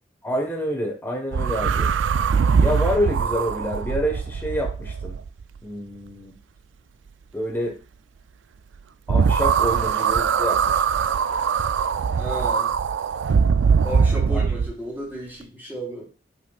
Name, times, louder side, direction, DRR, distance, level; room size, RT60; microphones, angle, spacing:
voice 1, 0.2-1.9 2.5-5.2 5.6-6.3 7.3-7.8 9.1-10.8 14.3-14.4, equal, 10° left, 1 dB, 1.4 m, -27 dB
sound 1, 1.3-5.6 9.1-14.7, right 6 dB, 90° right, 0.4 m, -22 dB
voice 2, 12.1-12.7 13.8-16.1, equal, 10° right, -6 dB, 4.0 m, -33 dB
8.4 x 6.0 x 2.5 m, 0.33 s
head